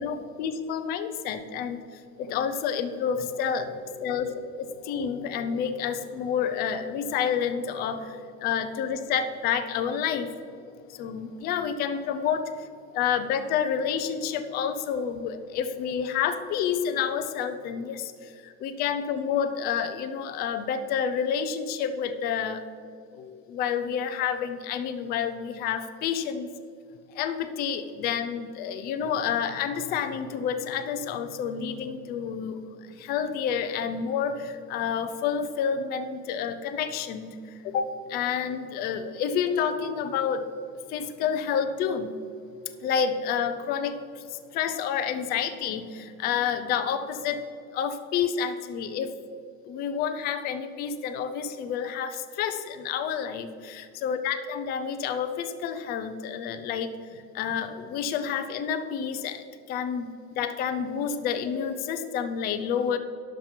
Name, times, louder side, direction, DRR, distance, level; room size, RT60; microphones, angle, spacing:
voice 1, 0.0-10.4 10.9-12.7 12.9-22.7 23.1-26.5 27.1-32.6 33.0-40.5 40.9-42.1 42.8-47.4 47.7-49.1 49.6-63.0, left 7 dB, 25° left, 9 dB, 0.5 m, -29 dB
10.5 x 7.4 x 5.7 m, 2.5 s
supercardioid pair, 150°, 43 cm